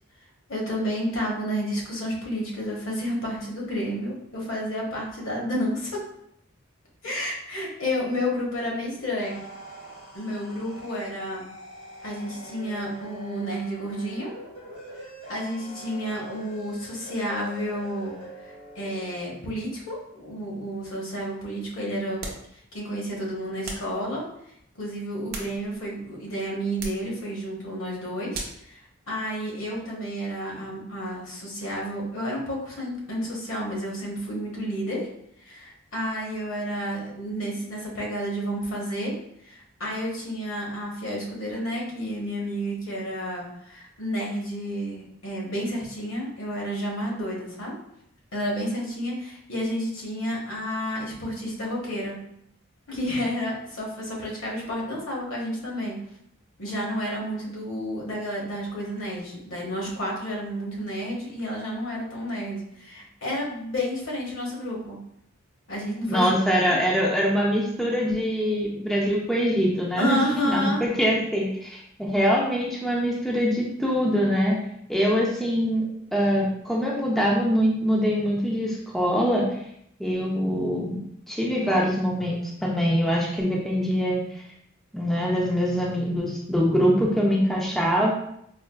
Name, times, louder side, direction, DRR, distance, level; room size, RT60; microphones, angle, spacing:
voice 1, 0.5-6.0 7.0-9.4 10.1-11.4 12.0-14.3 15.0-18.1 18.4-22.2 22.7-24.2 24.7-35.1 35.4-39.1 39.4-47.7 48.3-52.2 52.9-55.9 56.6-65.0 65.7-66.3 70.0-70.8, equal, 65° left, -3 dB, 1.0 m, -31 dB
sound 1, 8.8-19.2, right 1 dB, 85° left, 1.4 m, -44 dB
sound 2, 22.2-22.5 23.6-24.0 25.0-25.9 26.8-27.1 28.3-28.7, right 2 dB, 50° right, 0.6 m, -37 dB
voice 2, 66.1-74.6 74.9-79.5 80.0-81.0 81.3-84.4 84.9-88.1, equal, ahead, -3 dB, 0.4 m, -23 dB
4.4 x 2.3 x 2.3 m, 0.73 s
head